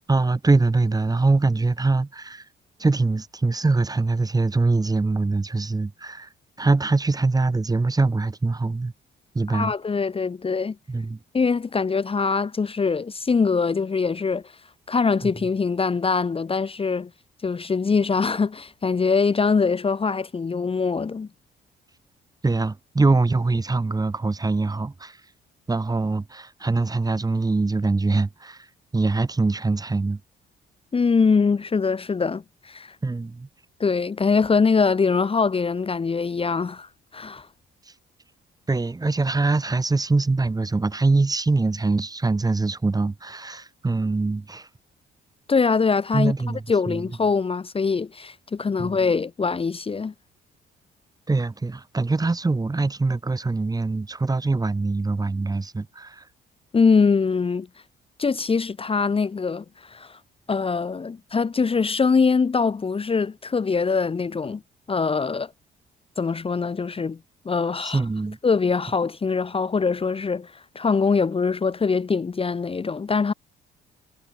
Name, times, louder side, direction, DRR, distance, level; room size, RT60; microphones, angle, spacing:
voice 1, 0.1-2.4 2.8-6.3 6.6-8.9 9.3-9.7 10.9-11.2 15.2-15.3 22.4-25.2 25.7-28.7 28.9-30.2 33.0-33.5 38.7-44.7 46.1-47.0 48.8-49.0 51.3-56.2 67.8-68.4, right 3 dB, 20° right, 1.6 m, -23 dB
voice 2, 9.5-10.8 11.3-14.5 14.9-17.1 17.4-21.3 30.9-33.0 33.8-37.5 45.5-46.3 46.7-50.1 56.7-57.7 58.2-60.2 60.5-64.6 64.9-65.5 66.2-67.2 67.4-68.0 68.4-73.3, left 5 dB, 30° left, 1.0 m, -23 dB
cardioid pair, 90°, 20 cm